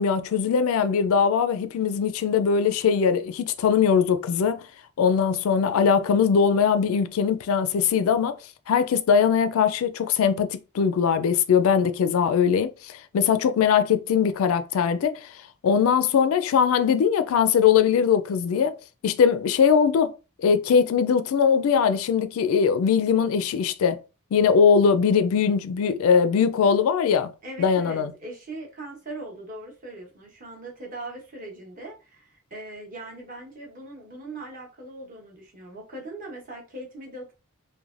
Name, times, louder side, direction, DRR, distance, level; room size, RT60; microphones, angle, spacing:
voice 1, 0.0-4.6 5.0-8.4 8.7-15.3 15.6-18.8 19.0-20.1 20.4-24.0 24.3-27.3 27.6-28.1, left 6 dB, 70° left, 0.3 m, -21 dB
voice 2, 27.4-37.3, right 2 dB, 40° right, 0.9 m, -40 dB
3.1 x 2.2 x 2.4 m
head